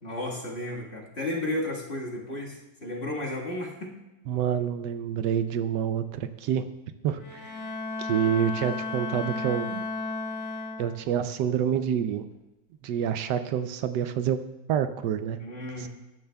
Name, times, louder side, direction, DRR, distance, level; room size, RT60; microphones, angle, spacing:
voice 1, 0.0-3.9 15.4-15.9, left 1 dB, 35° left, -3 dB, 1.8 m, -33 dB
voice 2, 4.3-6.6 7.0-7.6 8.0-9.9 10.8-12.2 12.8-14.4 14.7-15.4 15.8-15.9, right 9 dB, 80° right, 10 dB, 1.1 m, -27 dB
Bowed string instrument, 7.1-11.2, left 3 dB, 80° left, 2.1 m, -34 dB
15.0 x 10.5 x 2.3 m, 1.0 s
omnidirectional pair, 1.9 m